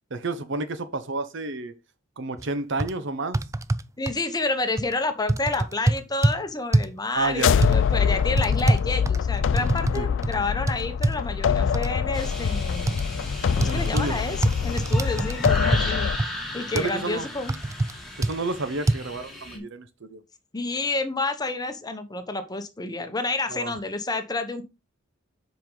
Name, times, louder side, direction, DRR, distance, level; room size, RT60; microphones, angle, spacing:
voice 1, 0.1-1.7 2.2-3.4 7.1-7.5 8.0-8.2 9.9-10.1 13.7-14.2 15.7-15.9 16.7-17.3 18.2-20.2 23.5-23.7, right 3 dB, 65° right, 0.9 m, -30 dB
sound 1, 2.4-2.5 2.8-2.9 3.3-4.2 4.8-4.9 5.3-6.4 6.7-7.0 7.6-7.8 8.4-10.0 10.2-10.4 10.7-11.2 11.7-11.9 12.9-13.0 13.6-14.1 14.4-15.8 16.2-16.3 16.8-16.9 17.5-17.9 18.2-18.3 18.9-19.0, right 2 dB, 15° right, 0.3 m, -23 dB
voice 2, 4.0-13.0 13.5-16.1 16.5-17.5 19.5-19.6 20.5-24.6, left 3 dB, 20° left, 0.9 m, -29 dB
sound 2, 7.3-16.2, left 7 dB, 65° left, 0.4 m, -24 dB
sound 3, 12.1-19.6, left 1 dB, ahead, 2.3 m, -34 dB
7.6 x 5.2 x 3.9 m
head